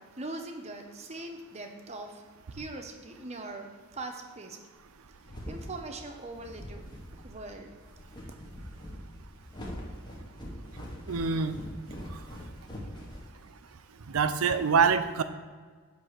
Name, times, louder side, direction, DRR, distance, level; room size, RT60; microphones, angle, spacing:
voice 1, 0.0-2.2 2.5-4.6 5.5-7.7, right 2 dB, 30° right, 4 dB, 0.8 m, -41 dB
sound 1, 4.9-13.8, equal, 20° left, 1.1 m, -43 dB
voice 2, 11.1-11.5 14.1-15.2, right 6 dB, 90° right, 11 dB, 0.5 m, -25 dB
9.7 x 3.4 x 6.5 m, 1.5 s
head